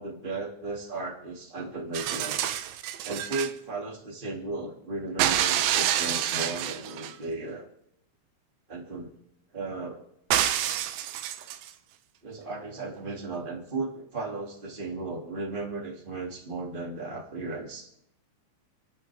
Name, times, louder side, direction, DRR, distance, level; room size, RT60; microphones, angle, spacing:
voice 1, 0.0-2.4 3.0-7.7 8.7-9.1 9.5-10.0 12.2-17.9, right 3 dB, 20° right, -1 dB, 1.4 m, -35 dB
sound 1, 1.9-3.5 5.2-7.2 10.3-11.7 13.0-13.1, right 11 dB, 85° right, 2.2 m, -27 dB
28.5 x 11.0 x 3.6 m, 0.79 s
omnidirectional pair, 5.6 m